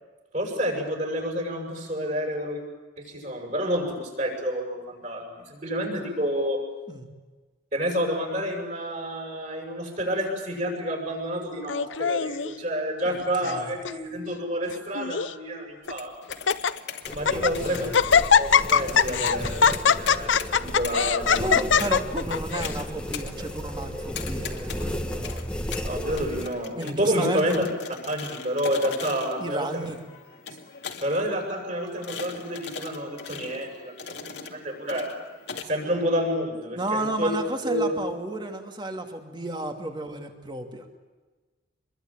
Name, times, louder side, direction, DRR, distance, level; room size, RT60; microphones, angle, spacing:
voice 1, 0.3-2.6 3.0-6.6 7.7-16.1 17.1-17.9 18.4-20.3 20.6-21.6 25.8-27.7 28.1-29.9 30.5-30.6 31.0-35.1 35.6-37.3 37.6-38.0, equal, 40° right, 2 dB, 7.5 m, -29 dB
Laughter, 11.7-12.5 13.2-13.6 13.8-13.9 14.7-15.3 15.9-16.0 16.3-16.7 17.1-17.5 17.9-22.7, left 6 dB, 85° left, 0.7 m, -21 dB
sound 1, 15.8-35.6, left 6 dB, 65° left, 2.4 m, -41 dB
sound 2, 17.1-26.5, equal, 5° left, 1.7 m, -34 dB
voice 2, 17.3-18.0 21.4-25.5 26.8-27.6 29.4-30.0 36.7-40.8, right 1 dB, 25° right, 4 dB, 2.6 m, -32 dB
26.0 x 22.5 x 9.0 m, 1.3 s
head